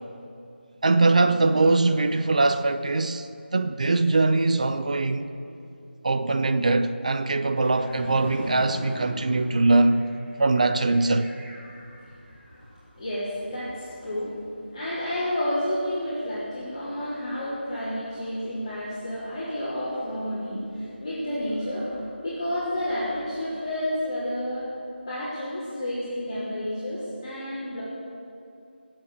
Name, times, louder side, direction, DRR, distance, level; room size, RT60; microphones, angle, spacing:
voice 1, 0.8-3.3 3.5-5.3 6.0-10.0 10.4-11.3, right 3 dB, 40° right, 0.7 m, -22 dB
sound 1, 7.5-12.8 13.1-14.5 14.8-16.0 17.1-18.9 20.1-23.3, equal, 10° right, 2.5 m, -43 dB
voice 2, 12.9-14.3 14.7-24.7 25.1-27.8, left 1 dB, 25° left, 3.5 m, -30 dB
21.0 x 7.8 x 6.7 m
figure-of-eight pair, 170°, 6 cm